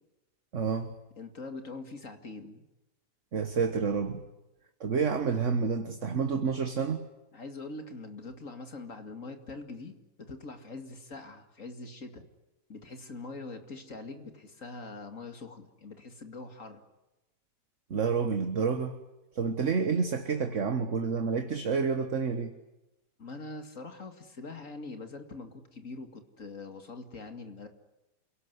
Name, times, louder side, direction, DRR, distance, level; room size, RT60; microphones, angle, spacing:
voice 1, 0.5-0.9 3.3-4.2 4.8-7.1 17.9-19.0 19.3-22.5, right 5 dB, 45° right, 9 dB, 1.6 m, -29 dB
voice 2, 1.2-2.6 7.3-12.2 12.7-16.8 23.2-27.7, left 3 dB, 45° left, 7 dB, 2.7 m, -43 dB
28.0 x 18.0 x 9.7 m, 1.0 s
omnidirectional pair, 2.0 m